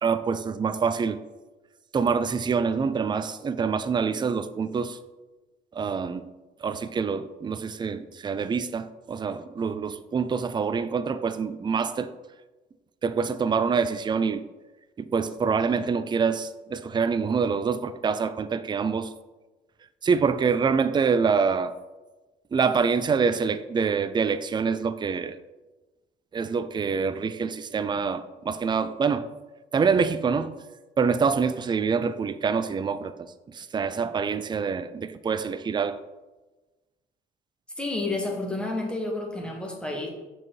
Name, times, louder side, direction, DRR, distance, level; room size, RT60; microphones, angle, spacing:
voice 1, 0.0-1.2 1.9-5.0 5.7-6.2 6.6-12.1 13.0-14.4 15.0-19.1 20.0-21.7 22.5-25.4 26.3-29.3 29.7-30.5 31.0-36.0, right 5 dB, 25° right, 0.4 m, -26 dB
voice 2, 37.8-40.1, left 2 dB, 5° left, 1.8 m, -30 dB
5.9 x 4.7 x 4.6 m
supercardioid pair, 75°, 18 cm